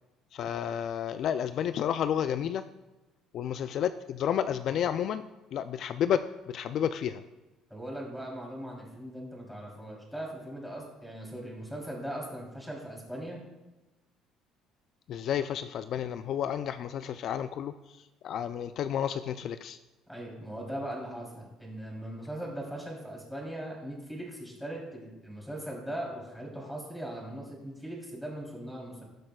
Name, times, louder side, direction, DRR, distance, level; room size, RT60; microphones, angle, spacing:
voice 1, 0.3-2.6 3.3-5.2 5.5-7.2 15.1-17.7 18.2-19.8, left 9 dB, 55° left, 11 dB, 0.3 m, -31 dB
voice 2, 7.7-13.4 20.1-29.0, right 1 dB, ahead, -2 dB, 3.2 m, -39 dB
18.0 x 6.4 x 2.3 m, 1.1 s
cardioid pair, 115°, 0 cm